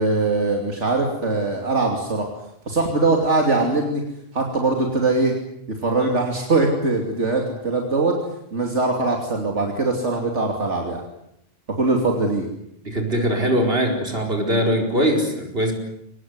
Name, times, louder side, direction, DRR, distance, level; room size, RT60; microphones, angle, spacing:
voice 1, 0.0-2.3 2.7-4.0 4.3-5.3 5.7-8.1 8.5-11.0 11.8-12.5, right 3 dB, 75° right, 2 dB, 3.3 m, -21 dB
voice 2, 12.8-15.7, equal, 55° right, 3 dB, 5.1 m, -21 dB
23.5 x 20.0 x 9.6 m, 0.76 s
omnidirectional pair, 1.2 m